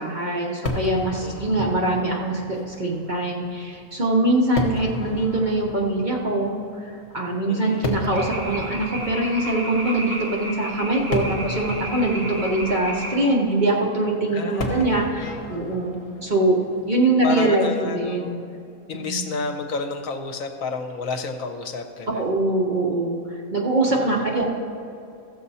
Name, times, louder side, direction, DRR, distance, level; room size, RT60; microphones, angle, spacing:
voice 1, 0.0-16.6 16.9-18.4 18.9-19.3 22.1-24.5, right 2 dB, 40° right, -2 dB, 0.9 m, -23 dB
Fireworks, 0.7-18.0, left 2 dB, 45° left, 1.3 m, -35 dB
voice 2, 1.2-1.6 7.4-7.9 14.3-15.4 17.2-18.4 18.9-22.2 23.9-24.5, left 4 dB, 70° left, 5 dB, 1.1 m, -31 dB
sound 1, 8.1-13.2, right 1 dB, 20° right, 1.9 m, -33 dB
15.5 x 6.8 x 4.2 m, 2.6 s
omnidirectional pair, 1.6 m